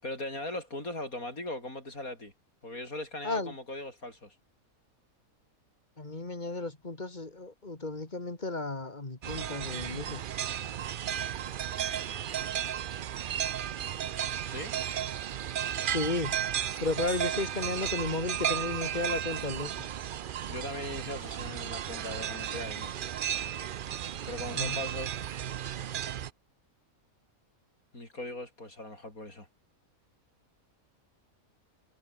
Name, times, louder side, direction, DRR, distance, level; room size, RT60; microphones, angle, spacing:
voice 1, 0.0-2.3 2.6-4.3 14.4-14.7 20.5-22.9 24.2-25.1 27.9-29.5, left 1 dB, 80° left, 8.5 m, -39 dB
voice 2, 6.0-10.2 15.8-16.4 16.8-19.7 24.5-24.8, left 2 dB, 30° left, 2.7 m, -34 dB
sound 1, 9.2-26.3, right 10 dB, 60° right, 0.5 m, -34 dB
sound 2, 17.1-19.0, right 2 dB, 85° right, 8.1 m, -48 dB
omnidirectional pair, 1.5 m